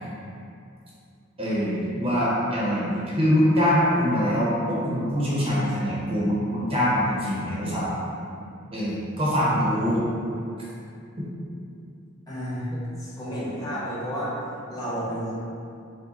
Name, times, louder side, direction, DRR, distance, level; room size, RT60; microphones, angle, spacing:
voice 1, 1.4-7.9 8.7-10.0 11.2-11.3, equal, 25° right, -8 dB, 0.8 m, -24 dB
voice 2, 12.3-12.7 13.0-14.3 14.7-15.4, equal, 20° left, -10 dB, 1.1 m, -31 dB
4.7 x 2.2 x 4.1 m, 2.5 s
head